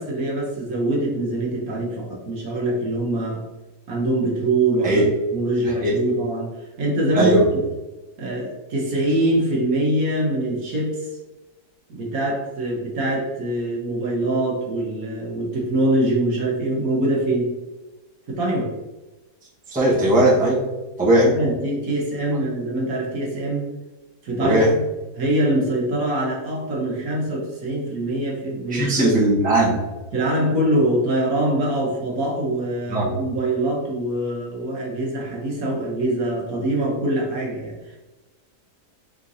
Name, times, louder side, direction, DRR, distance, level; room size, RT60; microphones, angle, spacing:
voice 1, 0.0-3.4 3.9-6.5 6.8-7.6 8.2-11.1 11.9-17.5 18.3-18.7 21.1-23.6 24.2-24.8 25.2-29.2 30.1-38.0, right 1 dB, 65° right, -3 dB, 1.4 m, -24 dB
voice 2, 19.7-20.6 21.0-21.3 24.4-24.7 28.7-29.8 32.9-33.1, right 1 dB, 5° right, -7 dB, 0.9 m, -18 dB
4.5 x 3.7 x 2.6 m, 1.1 s
omnidirectional pair, 1.6 m